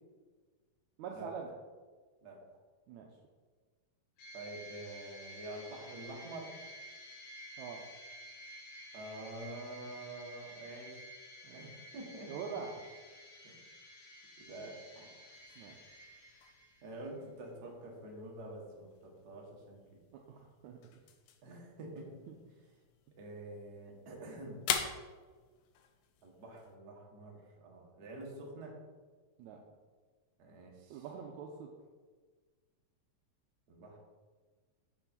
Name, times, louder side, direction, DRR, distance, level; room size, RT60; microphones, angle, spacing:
voice 1, 1.0-1.5 2.9-3.1 7.6-7.8 11.4-11.7 12.2-12.7 15.6-15.8 20.1-20.8 22.3-22.4 29.4-29.6 30.9-31.7, right 6 dB, 80° right, 1 dB, 1.8 m, -44 dB
sound 1, 4.2-17.0, equal, 65° left, 2.6 m, -52 dB
voice 2, 4.3-6.5 8.9-10.9 11.5-12.6 13.4-13.6 14.5-15.2 16.8-20.0 21.4-22.2 23.2-24.6 26.2-28.8 30.4-31.0 33.7-34.0, right 2 dB, 45° right, -1 dB, 1.3 m, -47 dB
sound 2, 15.3-26.8, left 8 dB, 80° left, 1.7 m, -45 dB
7.1 x 6.9 x 4.3 m, 1.4 s
omnidirectional pair, 4.0 m